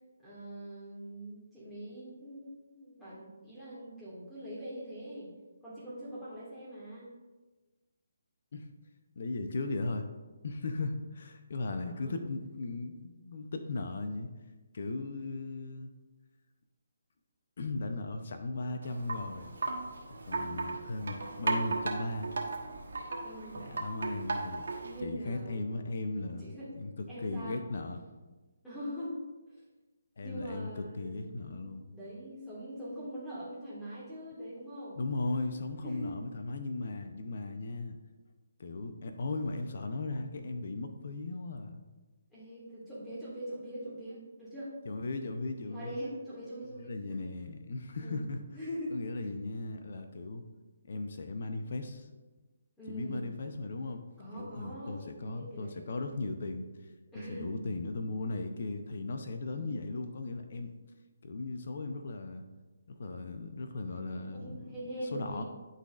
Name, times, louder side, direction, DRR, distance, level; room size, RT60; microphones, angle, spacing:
voice 1, 0.2-5.3 5.6-7.1 11.9-12.1 23.2-23.7 24.8-25.7 26.1-26.7 27.1-27.6 28.6-29.2 29.5-29.6 30.2-35.0 35.8-36.2 42.3-44.7 45.0-45.1 45.7-47.2 48.0-48.2 48.5-49.2 52.8-53.2 54.2-55.9 57.1-57.6 59.5-59.8 64.2-65.4, right 1 dB, 5° left, -10 dB, 1.7 m, -43 dB
voice 2, 9.2-10.1 10.4-14.3 14.7-15.9 17.6-19.5 20.1-22.3 23.5-24.6 25.0-28.0 30.2-31.9 35.0-38.0 38.6-41.8 44.9-45.9 46.8-48.4 48.9-50.5 50.9-52.1 52.9-54.0 54.3-56.7 57.3-60.7 61.2-62.4 62.9-64.6 65.1-65.4, left 2 dB, 60° left, 7 dB, 0.6 m, -37 dB
Wind chime, 18.8-25.0, right 3 dB, 70° right, 1.2 m, -36 dB
11.5 x 4.1 x 2.5 m, 1.2 s
figure-of-eight pair, 155°, 0 cm